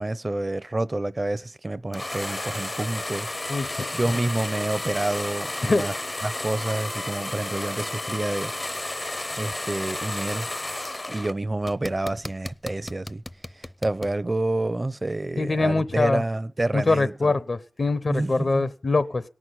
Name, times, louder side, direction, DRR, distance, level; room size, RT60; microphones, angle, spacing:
voice 1, 0.0-3.3 3.9-5.9 6.2-8.5 9.4-10.6 11.1-13.2 13.6-17.4 18.1-18.7, right 2 dB, 35° right, 0.6 m, -28 dB
sound 1, 1.9-11.3 11.6-14.1, left 1 dB, 30° left, 0.6 m, -32 dB
voice 2, 3.5-4.0 5.6-5.8 15.4-16.2 16.7-19.2, left 3 dB, 60° left, 0.8 m, -23 dB
18.0 x 6.2 x 9.7 m
wide cardioid pair, 55°, 0 cm